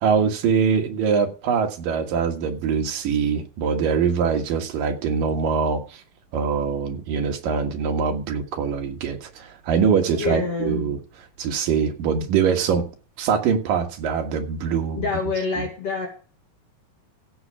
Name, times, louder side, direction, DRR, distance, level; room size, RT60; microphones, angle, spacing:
voice 1, 0.0-6.0 6.3-11.0 11.4-12.8 13.2-15.1 15.6-15.7, right 6 dB, 75° right, 3.4 m, -23 dB
voice 2, 10.1-10.8 15.0-16.1, left 4 dB, 45° left, 2.9 m, -26 dB
16.0 x 7.5 x 4.9 m
omnidirectional pair, 4.0 m